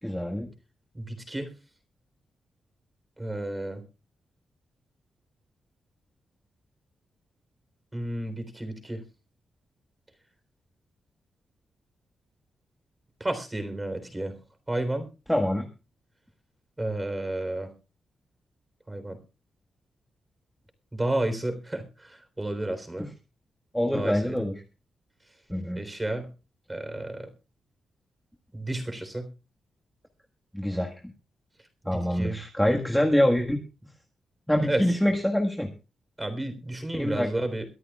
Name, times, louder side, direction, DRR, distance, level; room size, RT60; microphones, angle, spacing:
voice 1, 0.0-0.5 15.3-15.6 23.0-23.1 23.7-24.5 25.5-25.8 30.5-31.1 31.8-33.6 34.5-35.7 36.9-37.3, left 1 dB, 5° left, 1 dB, 1.6 m, -25 dB
voice 2, 0.9-1.5 3.2-3.8 7.9-9.0 13.2-14.3 14.7-15.1 16.8-17.7 18.9-19.2 20.9-23.1 23.9-24.4 25.8-26.3 26.7-27.3 28.5-29.3 31.8-32.4 34.6-34.8 36.2-37.7, right 1 dB, 15° right, 9 dB, 3.7 m, -31 dB
23.0 x 13.5 x 2.4 m, 0.32 s
wide cardioid pair, 125°, 0 cm